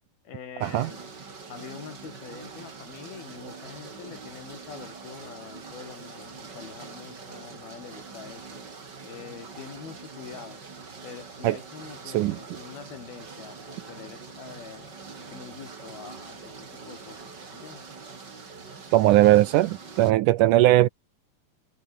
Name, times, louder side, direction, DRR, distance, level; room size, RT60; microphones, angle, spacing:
voice 1, 0.3-1.1 1.5-8.6 9.0-10.6 11.0-15.0 15.3-16.5 16.9-17.8, left 7 dB, 90° left, 5.6 m, -44 dB
sound 1, 0.6-20.1, right 4 dB, 30° right, 3.3 m, -44 dB
voice 2, 18.9-20.9, right 15 dB, 80° right, 1.9 m, -19 dB
omnidirectional pair, 4.2 m